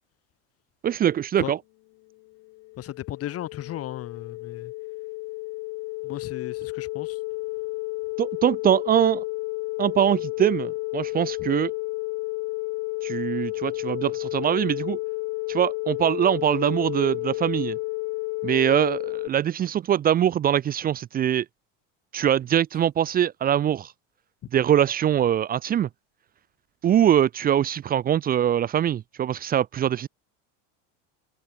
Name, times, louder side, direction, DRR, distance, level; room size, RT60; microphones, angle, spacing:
voice 1, 0.8-1.6 8.2-9.2 9.8-11.7 13.0-15.0 15.5-17.8 18.4-21.4 22.1-23.9 24.5-25.9 26.8-30.1, right 10 dB, 25° right, 0.6 m, -23 dB
sound 1, 2.3-19.3, left 24 dB, 60° left, 2.4 m, -31 dB
voice 2, 2.8-4.7 6.0-7.2, left 13 dB, 40° left, 5.9 m, -35 dB
supercardioid pair, 130°, 35 cm